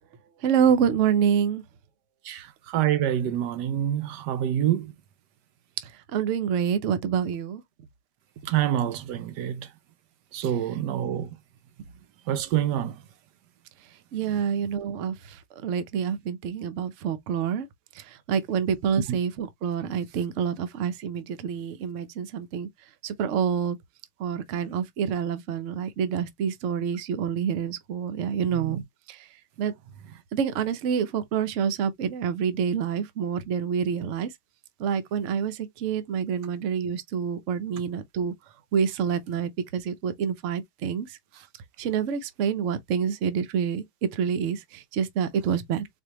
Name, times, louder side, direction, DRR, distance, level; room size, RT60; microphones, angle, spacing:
voice 1, 0.4-1.6 6.1-7.6 10.4-10.5 14.1-15.4 15.6-17.7 18.0-22.7 23.0-23.8 24.2-28.8 29.1-29.2 29.6-29.7 30.3-34.3 34.8-38.3 38.7-41.1 41.8-45.9, right 7 dB, 60° right, 0.9 m, -27 dB
voice 2, 2.7-4.9 8.5-9.7 10.3-11.3 12.3-12.9 19.1-19.2 28.6-28.8, right 11 dB, 75° right, 1.2 m, -26 dB
4.3 x 2.7 x 2.9 m
omnidirectional pair, 1.9 m